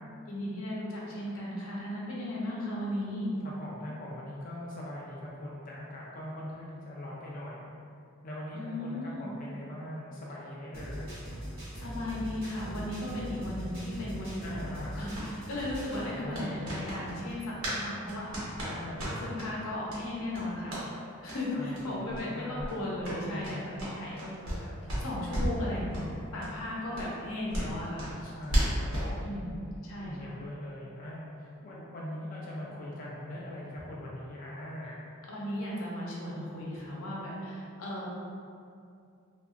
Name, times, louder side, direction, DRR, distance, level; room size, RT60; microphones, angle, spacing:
voice 1, 0.3-3.3 8.5-9.3 11.8-18.8 19.2-20.8 21.2-24.7 25.0-28.1 29.2-30.4 35.3-38.1, left 1 dB, 90° left, -5 dB, 0.6 m, -36 dB
voice 2, 3.4-7.7 8.2-11.2 14.4-14.9 16.0-16.7 18.7-19.2 21.5-22.7 23.2-23.9 28.2-29.4 30.0-35.0, left 1 dB, 40° left, -5 dB, 0.3 m, -41 dB
sound 1, 10.7-16.0, equal, 45° right, 0.9 m, -41 dB
sound 2, 15.1-17.8 18.1-19.5 19.9-20.0 20.3-20.8 21.2-21.4 21.7-21.8 22.1-22.3 22.6-24.6 24.9-25.6 25.9-26.1 26.4-26.5 26.9-29.1, equal, 85° right, 0.9 m, -34 dB
2.8 x 2.3 x 2.4 m, 2.4 s
head